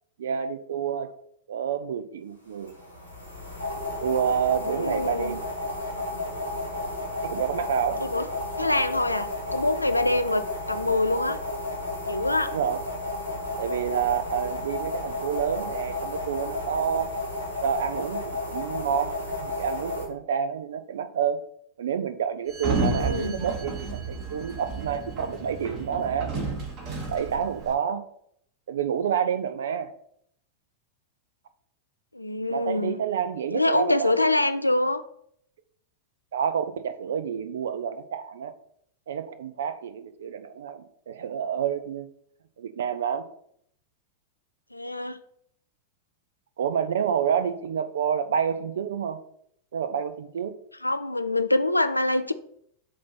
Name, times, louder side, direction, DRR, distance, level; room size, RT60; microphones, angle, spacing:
voice 1, 0.2-1.1 1.5-2.8 4.0-5.4 7.2-8.0 8.6-8.8 12.5-12.8 13.6-17.1 17.6-21.4 21.8-26.3 27.1-28.1 28.7-29.9 32.5-34.3 36.3-38.5 39.1-42.1 42.6-43.3 46.6-49.2 49.7-50.5, right 8 dB, 60° right, 0.5 m, -28 dB
sound 1, 2.6-20.1, left 2 dB, 85° right, 1.8 m, -32 dB
voice 2, 4.6-5.4 8.0-8.3 8.6-11.4 12.1-12.5 22.8-23.4 32.1-33.0 33.5-35.0 44.7-45.2 50.8-52.3, left 2 dB, 85° left, 0.3 m, -25 dB
Sliding door, 22.5-27.7, right 3 dB, 35° right, 1.4 m, -31 dB
7.4 x 2.7 x 5.7 m
figure-of-eight pair, 90°, 0 cm